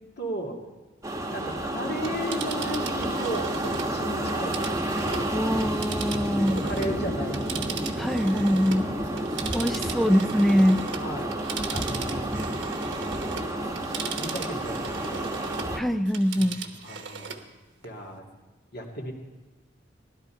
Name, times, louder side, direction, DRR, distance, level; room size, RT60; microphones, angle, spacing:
voice 1, 0.2-0.6 1.3-4.9 6.0-7.4 8.1-8.2 8.7-8.9 9.6-10.0 11.0-11.3 11.7-12.3 13.1-15.3 16.4-17.3 17.8-18.2 18.7-19.1, equal, 60° left, 0 dB, 2.3 m, -35 dB
sound 1, 1.0-15.8, right 1 dB, 20° right, 1.1 m, -30 dB
Telephone, 2.0-7.0 7.3-15.8 16.1-17.5 17.8-17.9, right 6 dB, 70° right, 1.1 m, -38 dB
voice 2, 5.3-6.6 8.0-8.9 9.5-10.9 15.8-16.6, equal, ahead, 10 dB, 0.3 m, -23 dB
16.0 x 12.0 x 4.5 m, 1.2 s
head